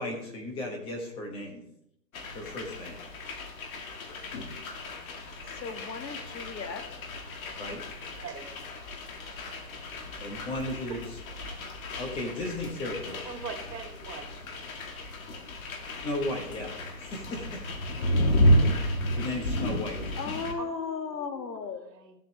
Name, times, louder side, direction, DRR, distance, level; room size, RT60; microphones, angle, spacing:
voice 1, 0.0-1.6 2.3-3.0 7.6-7.8 10.2-11.2 12.0-13.2 16.0-17.6 19.1-20.2, left 1 dB, 10° left, 1 dB, 1.1 m, -35 dB
sound 1, 2.1-20.5, equal, 55° left, 1.7 m, -32 dB
voice 2, 5.5-7.0 20.2-21.9, left 5 dB, 85° left, 7 dB, 1.6 m, -36 dB
voice 3, 8.1-8.5 10.1-10.2 10.9-11.0 13.3-14.3 20.6-21.6 21.9-22.1, right 6 dB, 80° right, 3 dB, 2.2 m, -42 dB
14.5 x 7.7 x 3.2 m, 0.78 s
hypercardioid pair, 155°, 49 cm